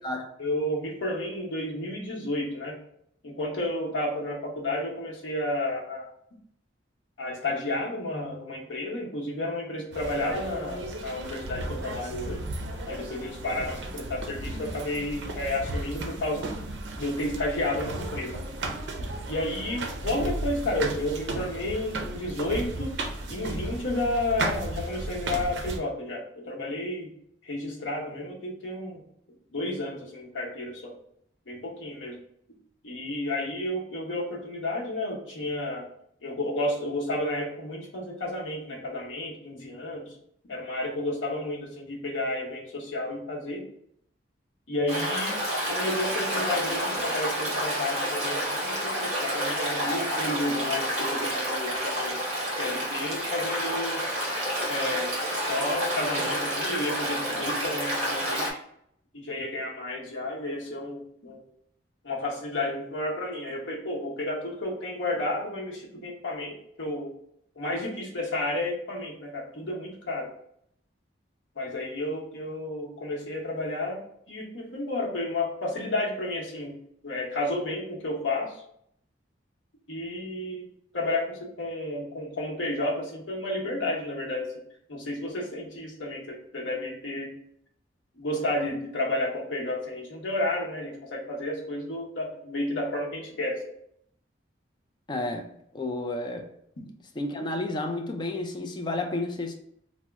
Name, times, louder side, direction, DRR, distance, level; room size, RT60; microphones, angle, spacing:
voice 1, 0.4-2.8 3.2-6.1 7.2-12.4 12.9-16.5 17.0-18.4 19.3-27.1 27.4-29.0 29.5-30.9 31.5-32.2 32.8-35.9 36.2-40.1 40.4-43.7 44.7-52.2 52.6-54.0 54.7-55.1 55.4-58.5 59.1-61.4 62.0-67.1 67.6-70.3 71.6-74.0 74.3-76.7 77.0-78.6 79.9-80.7 80.9-84.5 84.9-87.3 88.2-93.6, left 1 dB, 90° left, 0.9 m, -31 dB
sound 1, 9.9-25.8, right 2 dB, 65° right, 0.5 m, -35 dB
Stream, 44.9-58.5, equal, 35° right, 1.0 m, -29 dB
voice 2, 95.1-96.5 97.2-99.5, left 2 dB, 25° left, 0.3 m, -31 dB
2.9 x 2.0 x 3.4 m
head